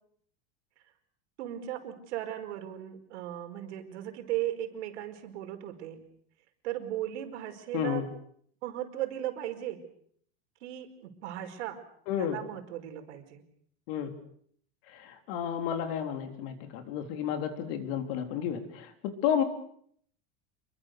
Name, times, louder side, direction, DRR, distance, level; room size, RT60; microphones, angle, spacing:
voice 1, 1.4-6.1 6.6-8.0 8.6-9.8 10.6-11.8 12.3-13.4, right 13 dB, 75° right, 6 dB, 5.1 m, -36 dB
voice 2, 7.7-8.1 12.1-12.4 13.9-14.1 14.9-19.4, left 9 dB, 55° left, 6 dB, 4.0 m, -31 dB
28.0 x 22.5 x 6.8 m, 0.64 s
supercardioid pair, 170°, 34 cm